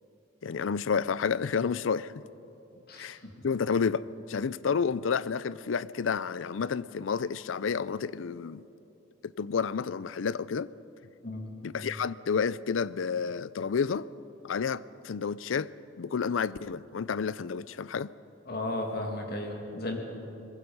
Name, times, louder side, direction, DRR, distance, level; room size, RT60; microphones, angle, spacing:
voice 1, 0.4-2.1 3.0-3.2 3.4-8.6 9.2-10.7 11.6-14.1 14.4-15.7 16.0-18.1, left 6 dB, 85° left, 0.5 m, -30 dB
voice 2, 2.9-3.3 11.2-11.5 18.5-20.0, left 1 dB, 55° left, 2.6 m, -34 dB
22.0 x 21.0 x 5.6 m
head